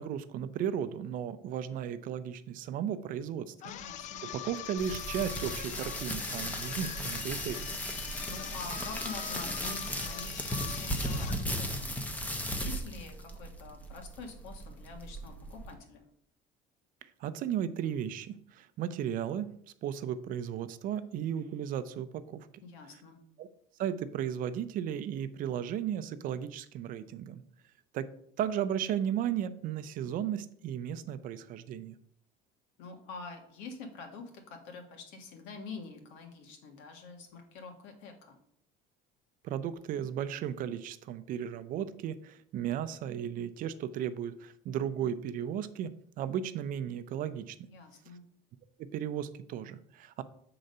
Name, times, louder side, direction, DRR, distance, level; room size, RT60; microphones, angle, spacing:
voice 1, 0.0-3.5 4.2-7.7 17.2-19.5 19.8-22.5 23.4-23.5 23.8-27.4 27.9-28.1 28.4-32.0 39.4-47.6 48.8-50.2, right 9 dB, 50° right, 13 dB, 0.5 m, -35 dB
voice 2, 3.6-4.3 8.3-11.9 12.5-16.0 22.6-23.2 32.8-38.4 47.7-48.2, left 4 dB, 90° left, 4 dB, 1.7 m, -46 dB
sound 1, 3.6-11.4, left 10 dB, 40° left, 0.4 m, -43 dB
sound 2, 4.8-15.7, equal, 10° left, 0.7 m, -37 dB
7.8 x 3.9 x 5.4 m, 0.68 s
cardioid pair, 160°, 19 cm